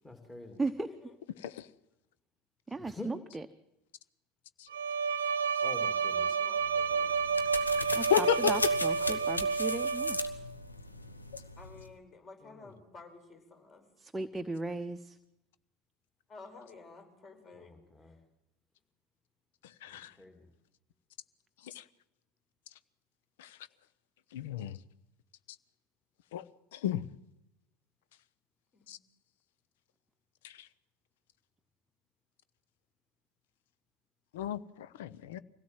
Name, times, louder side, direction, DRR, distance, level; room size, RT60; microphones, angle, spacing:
voice 1, 0.0-0.6 2.8-3.1 5.6-6.3 12.4-12.7 17.5-18.2 19.9-20.5, left 3 dB, 15° left, 2.7 m, -46 dB
voice 2, 0.9-1.2 6.2-7.1 9.0-9.2 11.6-13.9 16.3-17.7 18.0-18.2 28.7-29.0, left 3 dB, 35° left, 5.0 m, -52 dB
voice 3, 2.7-3.4 7.9-10.2 14.0-15.2, right 2 dB, 10° right, 0.9 m, -36 dB
Bowed string instrument, 4.7-10.5, right 5 dB, 75° right, 0.8 m, -30 dB
sound 1, 6.6-11.9, left 2 dB, 90° left, 1.2 m, -38 dB
voice 4, 7.8-8.5 19.8-20.1 21.6-21.8 23.4-23.5 24.3-24.8 26.3-26.4 26.7-27.1 28.9-29.0 30.4-30.5 34.3-35.4, left 11 dB, 65° left, 0.8 m, -32 dB
24.5 x 17.0 x 7.5 m
figure-of-eight pair, 75°, 0 cm